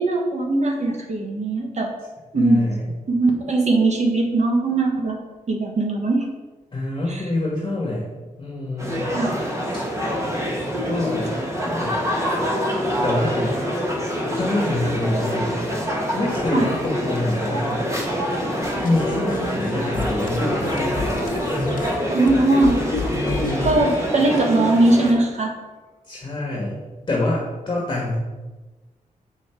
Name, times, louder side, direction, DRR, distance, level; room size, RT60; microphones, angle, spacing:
voice 1, 0.0-1.9 2.3-2.7 3.1-5.2 5.5-6.3 7.1-7.2 9.1-9.4 10.7-11.2 16.5-16.7 22.1-22.8 23.6-25.5, right 2 dB, 50° right, 2 dB, 1.5 m, -20 dB
voice 2, 2.3-2.9 6.7-8.1 8.4-9.1 10.8-11.3 11.7-12.0 13.0-13.6 14.3-15.5 16.1-17.8 18.8-21.2 23.1-23.7 26.0-26.8 27.1-28.2, left 2 dB, 30° left, -2 dB, 1.5 m, -26 dB
sound 1, 8.8-25.1, equal, 20° right, 1.6 m, -25 dB
sound 2, 18.6-23.9, left 4 dB, 70° left, 0.9 m, -31 dB
7.3 x 5.2 x 4.5 m, 1.2 s
cardioid pair, 95°, 15 cm